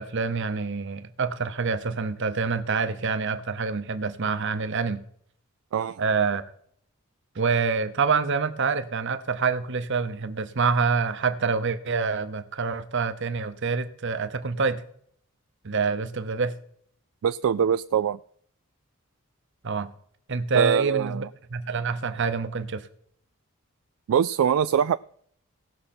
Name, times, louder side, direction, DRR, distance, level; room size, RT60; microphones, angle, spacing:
voice 1, 0.0-5.0 6.0-6.4 7.3-14.8 15.6-16.5 19.6-19.9 20.3-21.2 21.5-22.8, right 5 dB, 55° right, 0.9 m, -26 dB
voice 2, 5.7-6.0 17.2-18.2 20.5-21.3 24.1-25.0, right 8 dB, 75° right, 0.3 m, -23 dB
18.0 x 6.4 x 4.3 m
head